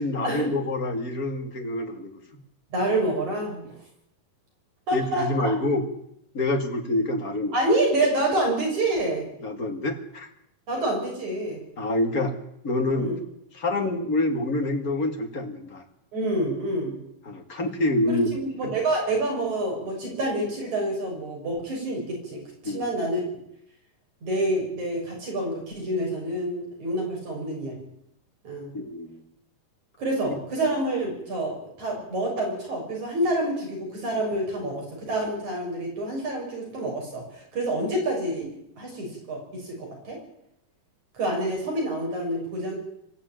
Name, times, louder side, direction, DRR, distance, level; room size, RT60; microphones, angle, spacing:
voice 1, 0.0-2.2 4.9-5.9 6.3-7.6 9.4-10.3 11.8-12.3 12.6-13.1 13.6-15.8 17.2-18.3 22.6-22.9 28.7-29.2, left 2 dB, 30° left, 4 dB, 2.3 m, -27 dB
voice 2, 2.7-3.8 4.9-5.5 7.5-9.2 10.7-11.6 13.0-13.2 13.7-14.0 16.1-17.0 18.1-23.2 24.2-27.8 28.4-28.7 30.0-38.5 38.8-40.2 41.1-42.8, right 1 dB, 55° right, -1 dB, 8.0 m, -27 dB
25.5 x 13.0 x 9.0 m, 0.75 s
omnidirectional pair, 3.9 m